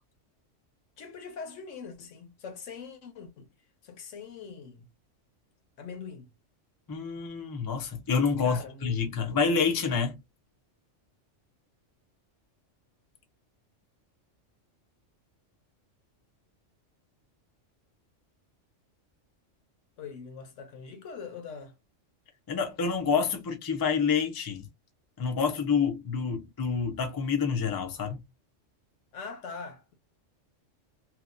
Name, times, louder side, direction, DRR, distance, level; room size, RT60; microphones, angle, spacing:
voice 1, 1.0-3.5 3.8-4.9 5.8-6.3 8.4-9.0 20.0-21.7 29.1-29.9, left 5 dB, 75° left, 1.1 m, -42 dB
voice 2, 6.9-10.2 22.5-24.7 25.2-28.2, left 5 dB, 30° left, 0.4 m, -28 dB
2.8 x 2.4 x 2.5 m
omnidirectional pair, 1.3 m